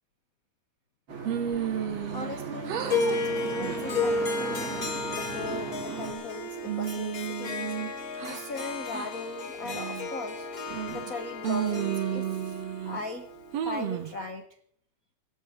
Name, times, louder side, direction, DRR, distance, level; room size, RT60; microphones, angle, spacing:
sound 1, 1.1-6.1, right 6 dB, 40° right, 3.4 m, -38 dB
sound 2, 1.3-2.4 2.7-3.2 3.6-3.9 4.4-5.0 5.5-6.3 6.7-8.4 8.9-9.1 9.6-10.1 10.7-11.1 11.4-13.0 13.5-14.1, right 9 dB, 65° right, 2.3 m, -33 dB
voice 1, 2.1-4.7 5.1-7.7 8.2-10.5 10.9-12.6 12.8-13.3 13.6-14.5, left 3 dB, 65° left, 7 dB, 0.8 m, -39 dB
Harp, 2.8-14.1, left 3 dB, 35° left, 1.6 m, -33 dB
18.5 x 13.0 x 5.1 m, 0.63 s
omnidirectional pair, 3.4 m